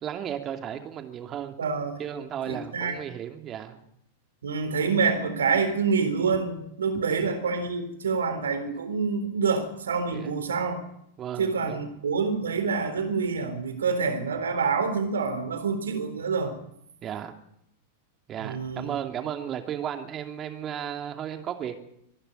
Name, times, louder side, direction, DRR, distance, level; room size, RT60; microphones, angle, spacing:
voice 1, 0.0-1.5 2.0-3.8 7.1-7.3 10.1-10.3 11.2-11.9 17.0-17.3 18.3-21.8, right 9 dB, 30° right, 6 dB, 2.7 m, -34 dB
voice 2, 1.6-1.9 2.5-3.0 4.4-10.8 11.4-16.6 18.4-18.9, right 5 dB, 70° right, 8 dB, 3.8 m, -27 dB
24.0 x 12.0 x 9.4 m, 0.75 s
figure-of-eight pair, 95°, 0 cm